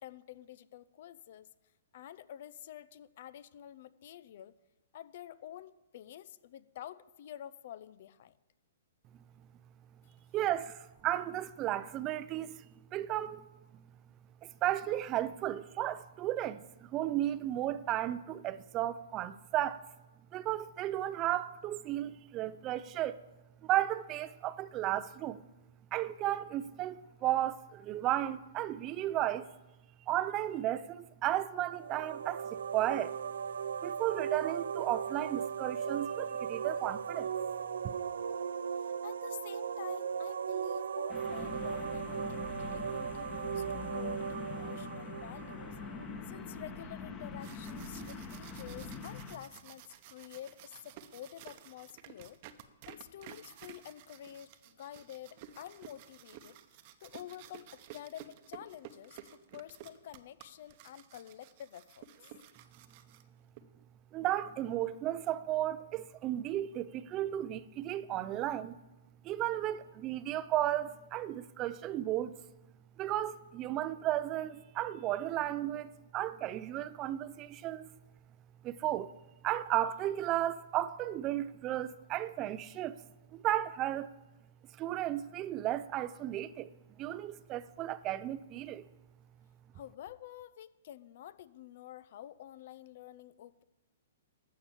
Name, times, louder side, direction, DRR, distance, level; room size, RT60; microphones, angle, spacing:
voice 1, 0.0-1.5 1.9-4.6 4.9-8.3 38.8-45.8 46.3-52.4 52.9-56.6 57.0-62.1 89.7-93.6, left 11 dB, 55° left, 0.6 m, -49 dB
voice 2, 10.3-12.7 12.9-13.4 13.7-13.8 14.4-19.8 20.3-23.2 23.6-25.4 25.9-29.5 30.1-33.1 33.8-37.3 37.8-37.9 64.1-68.8 69.2-72.4 73.0-77.9 78.6-79.1 79.4-83.0 83.3-84.1 84.8-86.7 87.0-88.8, right 13 dB, 30° right, 0.5 m, -34 dB
sound 1, 31.7-46.4, right 7 dB, 75° right, 0.5 m, -37 dB
sound 2, 41.1-49.4, left 4 dB, 25° left, 1.4 m, -43 dB
sound 3, 47.2-63.6, right 10 dB, 45° right, 0.9 m, -53 dB
13.5 x 6.0 x 7.3 m
hypercardioid pair, 135°, 0 cm